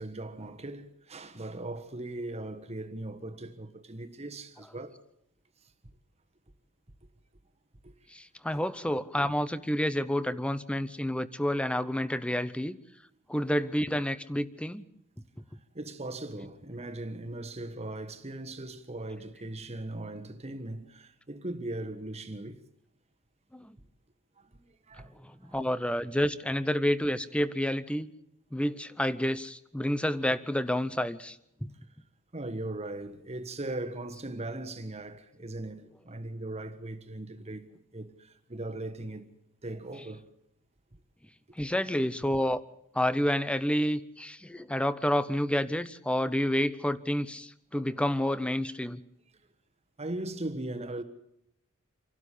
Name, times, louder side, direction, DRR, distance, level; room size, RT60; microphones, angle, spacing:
voice 1, 0.0-5.0 7.8-7.9 15.7-22.6 24.4-24.6 24.9-25.6 32.3-39.3 39.6-40.3 50.0-51.0, right 2 dB, 30° right, 1.4 m, -39 dB
voice 2, 8.1-12.8 13.3-14.8 23.5-23.7 25.4-28.1 28.5-31.4 31.6-31.7 41.6-42.6 42.9-49.0, equal, 5° left, 0.7 m, -29 dB
27.0 x 12.0 x 8.4 m
head